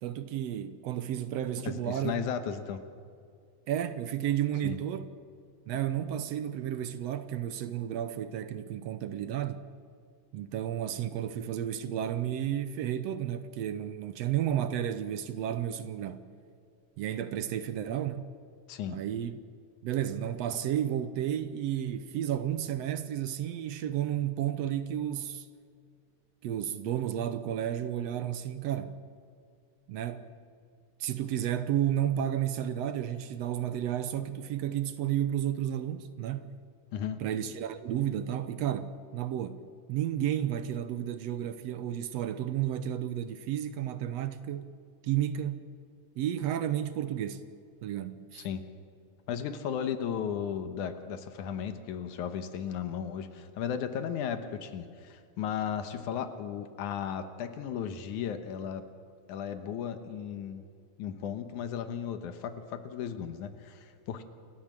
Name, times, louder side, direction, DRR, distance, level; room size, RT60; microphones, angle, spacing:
voice 1, 0.0-2.1 3.7-5.1 5.7-9.6 10.3-16.2 17.0-18.2 18.9-19.4 19.8-25.5 26.4-29.0 29.9-30.3 31.0-36.5 37.2-44.7 45.0-45.7 46.2-47.4 47.8-48.5, right 11 dB, 70° right, 1.7 m, -32 dB
voice 2, 1.6-2.8 4.6-4.8 18.7-19.0 36.9-37.2 48.3-48.6 49.3-58.8 59.3-60.6 61.0-64.2, left 8 dB, 80° left, 2.5 m, -35 dB
28.5 x 13.0 x 7.4 m
omnidirectional pair, 3.5 m